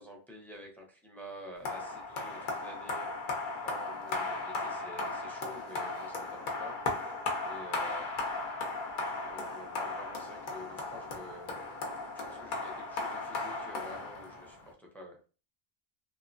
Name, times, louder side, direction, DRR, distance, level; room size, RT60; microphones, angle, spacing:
voice 1, 0.0-3.1 3.6-7.1 7.4-8.1 9.2-11.6 12.1-15.2, left 1 dB, ahead, 0 dB, 0.4 m, -49 dB
sound 1, 1.6-14.7, left 3 dB, 55° left, 0.7 m, -36 dB
2.9 x 2.1 x 2.5 m, 0.35 s
omnidirectional pair, 1.1 m